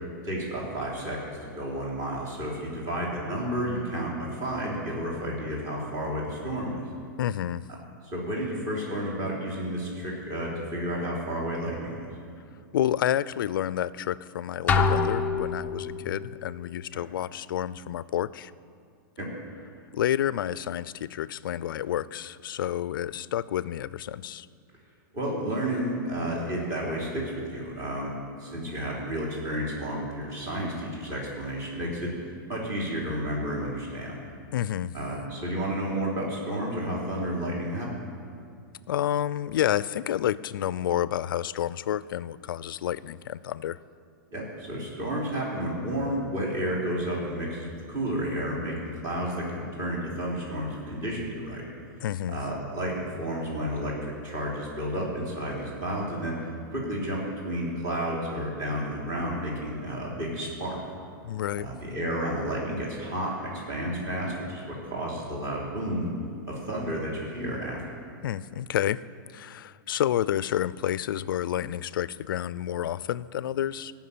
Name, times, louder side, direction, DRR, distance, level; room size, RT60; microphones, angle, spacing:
voice 1, 0.2-6.7 8.1-12.1 15.9-16.0 16.9-17.0 19.2-19.3 25.1-32.1 32.5-34.2 34.9-38.0 44.3-51.6 52.3-56.4 56.7-60.8 61.6-66.1 66.5-68.0, equal, 30° right, -3 dB, 3.4 m, -31 dB
voice 2, 7.2-7.6 12.7-18.5 19.9-24.5 34.5-34.9 38.9-43.8 52.0-52.4 61.2-61.7 68.2-69.0 69.3-73.9, left 11 dB, 75° left, 18 dB, 0.4 m, -29 dB
sound 1, 14.7-16.1, left 5 dB, 15° left, 0.5 m, -25 dB
17.0 x 6.0 x 8.5 m, 2.4 s
supercardioid pair, 160°, 11 cm